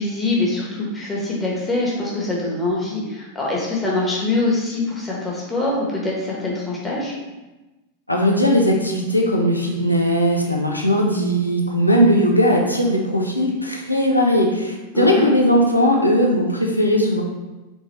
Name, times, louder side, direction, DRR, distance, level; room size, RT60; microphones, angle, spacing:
voice 1, 0.0-7.1 14.9-15.3, left 2 dB, 10° left, -4 dB, 1.3 m, -24 dB
voice 2, 8.1-17.2, equal, 85° left, 0 dB, 0.7 m, -18 dB
4.0 x 3.5 x 3.2 m, 1.1 s
figure-of-eight pair, 90°, 0 cm